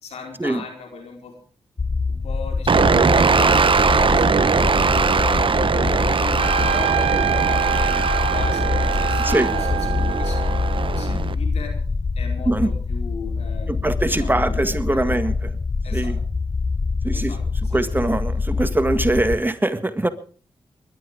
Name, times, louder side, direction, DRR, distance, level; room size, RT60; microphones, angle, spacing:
voice 1, 0.0-1.3 2.1-9.7 10.0-10.7 10.9-11.8 12.1-15.3 15.8-16.2 17.1-17.9, left 5 dB, 85° left, 3 dB, 4.6 m, -37 dB
sound 1, 1.8-19.4, left 4 dB, 40° left, 0.9 m, -25 dB
sound 2, 2.7-11.3, right 5 dB, 55° right, 1.1 m, -20 dB
Trumpet, 6.4-11.1, right 10 dB, 85° right, 1.0 m, -26 dB
voice 2, 13.7-15.3 15.9-16.2 17.0-17.4 17.7-20.1, right 1 dB, 20° right, 10 dB, 1.9 m, -22 dB
21.0 x 12.0 x 5.1 m, 0.42 s
cardioid pair, 45°, 11 cm